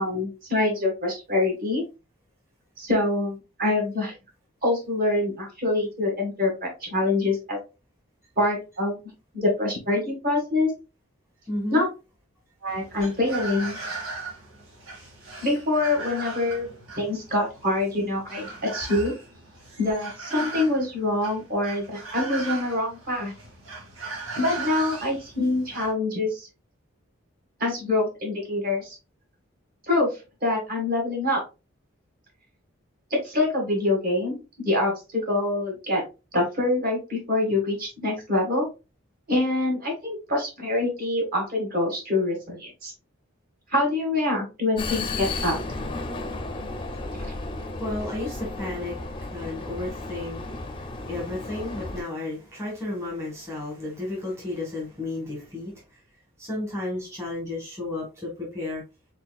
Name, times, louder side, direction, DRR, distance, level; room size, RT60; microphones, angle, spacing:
voice 1, 0.0-1.8 2.8-4.1 4.6-7.6 8.4-9.0 9.3-10.7 11.7-11.9 12.6-13.8 15.4-16.7 17.0-19.1 19.8-23.3 24.4-26.5 27.6-29.0 29.9-30.1 30.4-31.4 33.1-36.0 36.3-38.7 39.3-42.9 43.7-45.6 47.2-47.3, left 2 dB, 45° right, 1.7 m, -25 dB
voice 2, 11.5-11.8 47.4-47.5 47.8-48.9 49.3-50.4 51.0-55.7 56.4-58.8, left 2 dB, 15° right, 1.2 m, -32 dB
sound 1, 12.7-25.9, right 3 dB, 80° right, 1.7 m, -38 dB
Vehicle, 44.8-52.0, left 2 dB, 25° left, 0.5 m, -33 dB
4.4 x 3.8 x 2.3 m
head